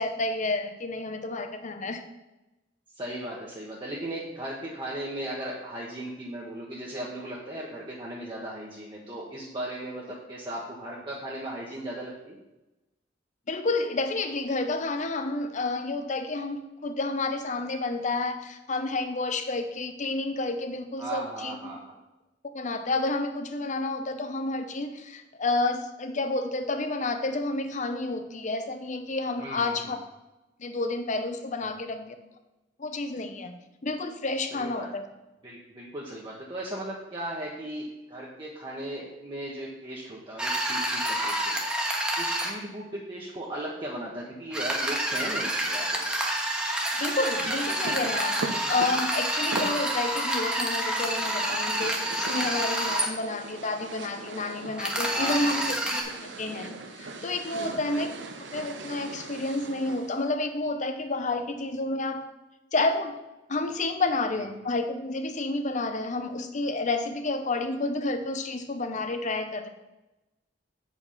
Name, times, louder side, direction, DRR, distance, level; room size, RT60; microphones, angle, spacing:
voice 1, 0.0-2.0 13.5-21.8 22.5-30.0 30.6-32.2 32.8-33.5 33.8-35.1 47.0-56.0 56.4-58.1 58.5-62.3 62.7-63.2 63.5-69.7, left 2 dB, 40° left, 8 dB, 0.8 m, -30 dB
voice 2, 2.9-12.4 21.0-21.9 29.4-29.7 34.4-34.9 35.4-41.5 42.2-46.0 55.1-55.6 57.5-57.8, right 1 dB, 25° right, -5 dB, 1.2 m, -37 dB
sound 1, 40.4-42.5 44.5-53.1 54.8-56.0, right 1 dB, 5° right, 1.3 m, -28 dB
Bed Sounds, 47.4-60.2, right 3 dB, 70° right, 0.9 m, -40 dB
8.0 x 5.4 x 5.6 m, 0.99 s
head